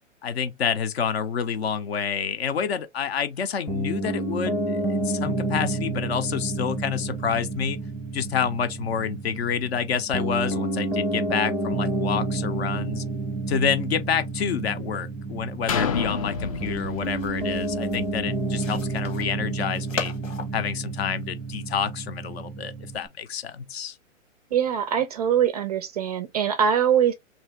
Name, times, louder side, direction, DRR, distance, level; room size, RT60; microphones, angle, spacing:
voice 1, 0.2-7.8 8.1-13.0 13.5-20.1 20.5-24.0, left 7 dB, 55° left, 0.7 m, -28 dB
Piano, 3.7-23.1, right 2 dB, ahead, 0.8 m, -30 dB
sound 1, 15.7-19.5 20.0-20.1, left 5 dB, 30° left, 0.4 m, -31 dB
sound 2, 16.3-21.9, left 5 dB, 75° left, 1.5 m, -39 dB
voice 2, 24.5-27.1, right 8 dB, 30° right, 0.4 m, -22 dB
2.9 x 2.8 x 3.3 m
figure-of-eight pair, 125°, 38 cm